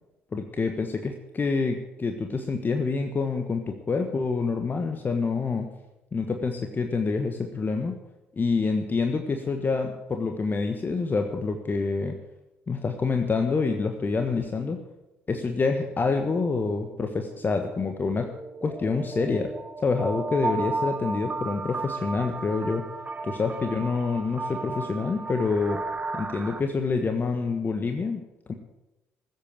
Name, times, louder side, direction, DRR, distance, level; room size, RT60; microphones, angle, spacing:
voice 1, 0.3-5.7 6.1-8.0 8.3-12.2 12.7-14.8 15.3-18.3 18.6-19.5 19.8-22.9 23.2-25.8 26.1-28.2 28.5-28.6, left 4 dB, 35° left, 5 dB, 1.4 m, -27 dB
sound 1, 17.0-17.1 17.4-26.6, right 3 dB, 25° right, 1.0 m, -34 dB
15.0 x 8.7 x 7.5 m, 0.96 s
hypercardioid pair, 50°, 6 cm